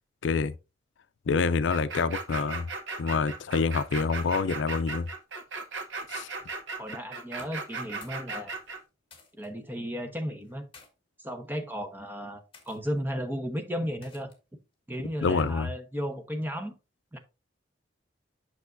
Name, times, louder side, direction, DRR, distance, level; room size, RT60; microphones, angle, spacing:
voice 1, 0.2-0.5 1.3-2.7 3.0-5.1 6.1-6.4 15.2-15.7, left 4 dB, 75° left, 0.4 m, -27 dB
sound 1, 1.7-8.8, right 4 dB, 85° right, 1.0 m, -37 dB
voice 2, 6.8-8.5 9.4-10.7 11.2-14.3 14.9-16.7 17.1-17.2, equal, 10° right, 0.9 m, -34 dB
sound 2, 7.4-8.3 8.5-9.5 10.4-10.9 11.7-11.9 12.5-12.8 14.0-14.5, left 4 dB, 30° left, 1.5 m, -55 dB
8.3 x 6.0 x 2.6 m
head